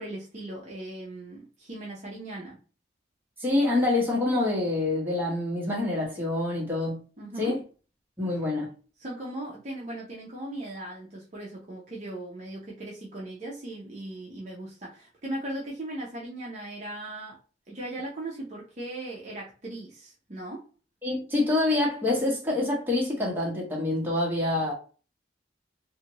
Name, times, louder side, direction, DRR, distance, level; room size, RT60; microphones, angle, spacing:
voice 1, 0.0-2.6 7.2-7.6 9.0-17.4 17.7-20.6, right 1 dB, 40° right, 0.6 m, -38 dB
voice 2, 3.4-7.0 7.4-7.6 8.2-8.7 21.0-24.7, left 2 dB, 10° right, 1.0 m, -26 dB
2.6 x 2.4 x 2.9 m
head